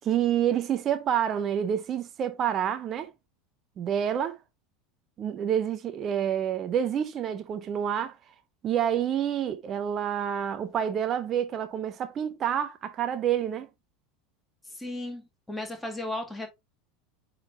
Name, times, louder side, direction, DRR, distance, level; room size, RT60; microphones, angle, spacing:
voice 1, 0.0-3.1 3.8-4.4 5.2-8.1 8.6-13.7, right 9 dB, 35° right, 0.8 m, -28 dB
voice 2, 14.7-16.5, left 1 dB, 5° left, 2.3 m, -35 dB
8.8 x 4.0 x 2.9 m
figure-of-eight pair, 80°, 0 cm